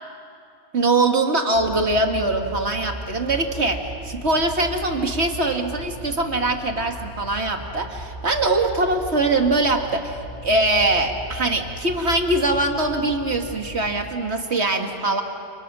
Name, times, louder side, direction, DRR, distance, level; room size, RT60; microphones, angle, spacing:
voice 1, 0.7-15.2, right 2 dB, 70° right, 3 dB, 2.2 m, -22 dB
sound 1, 1.5-13.9, right 1 dB, 55° left, 4.8 m, -37 dB
29.5 x 29.0 x 6.2 m, 2.7 s
omnidirectional pair, 1.2 m